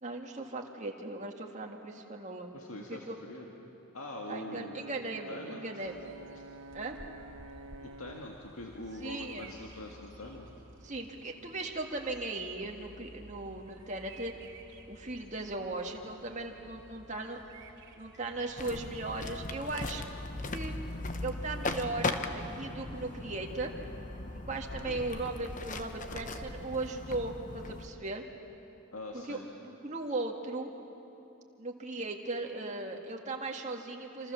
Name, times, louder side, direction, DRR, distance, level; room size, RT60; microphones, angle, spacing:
voice 1, 0.0-2.5 2.9-3.2 4.3-6.0 6.7-7.0 9.0-9.5 10.8-14.3 14.9-17.4 18.0-20.0 20.5-20.7 21.2-23.7 24.5-28.2 29.3-29.4 29.8-30.7 31.6-34.3, right 2 dB, 35° right, 1 dB, 2.0 m, -37 dB
voice 2, 2.5-3.5 3.9-4.9 5.3-5.7 6.3-6.4 7.8-10.5 24.8-25.1 28.9-29.5, left 1 dB, 80° left, 0 dB, 2.0 m, -43 dB
Brass instrument, 4.2-8.4, right 3 dB, 80° right, 0.8 m, -49 dB
Bird vocalization bird call bird song, 5.8-21.0, right 2 dB, 55° right, 3.0 m, -54 dB
sound 1, 18.6-27.9, left 2 dB, 35° left, 1.1 m, -38 dB
27.0 x 27.0 x 7.1 m, 2.9 s
head